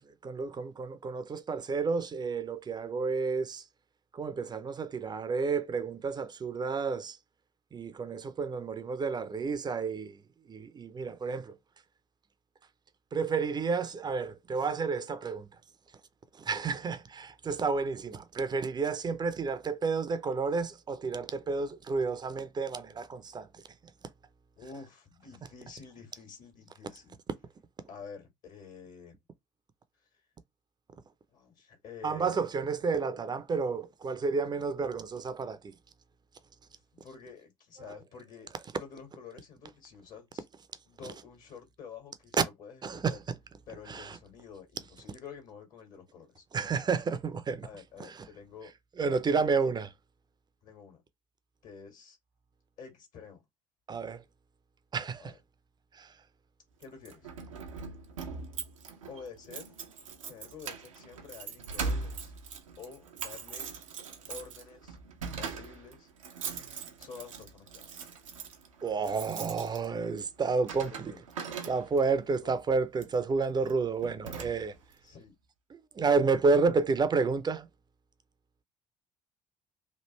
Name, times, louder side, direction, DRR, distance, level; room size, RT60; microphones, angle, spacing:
voice 1, 0.2-3.6 4.1-7.2 7.7-10.2 10.5-11.6 13.1-15.5 16.3-23.5 32.0-35.7 37.8-38.0 42.8-43.2 43.9-44.2 46.5-47.7 48.0-48.2 49.0-49.9 53.9-54.2 54.9-55.3 55.9-56.1 68.8-71.1 71.7-74.7 75.7-77.7, right 4 dB, 25° right, 0.6 m, -30 dB
voice 2, 16.5-16.8 24.6-27.2 27.9-29.2 31.3-32.5 36.7-38.5 38.7-40.4 40.9-43.2 43.7-46.4 47.6-48.7 49.0-49.6 50.6-51.0 51.6-52.2 52.8-53.4 55.2-55.4 56.8-57.3 59.1-59.8 60.3-62.3 62.8-63.7 64.3-65.0 65.4-66.1 67.0-68.1 70.7-71.2 72.4-72.6 75.0-75.3, left 6 dB, 55° left, 1.7 m, -49 dB
Keys jangling, 56.8-72.2 72.9-73.2 73.7-73.8 74.0-74.9, right 5 dB, 80° right, 0.7 m, -41 dB
3.2 x 2.5 x 3.0 m
figure-of-eight pair, 55°, 17 cm